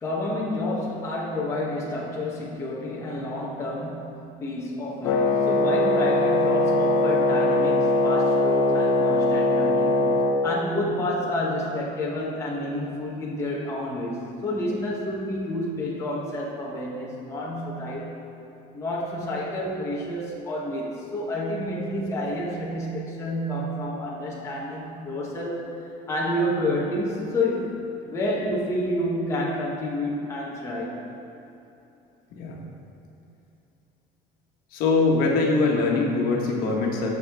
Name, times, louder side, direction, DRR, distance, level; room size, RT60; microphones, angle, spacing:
voice 1, 0.0-10.0 10.4-18.1 18.7-31.0, left 1 dB, 15° left, -5 dB, 1.1 m, -29 dB
Wind instrument woodwind instrument, 5.0-10.4, left 2 dB, 80° left, 0.8 m, -21 dB
voice 2, 34.7-37.1, left 3 dB, 55° left, -1 dB, 1.5 m, -22 dB
14.0 x 6.5 x 3.5 m, 2.9 s
cardioid pair, 170°, 18 cm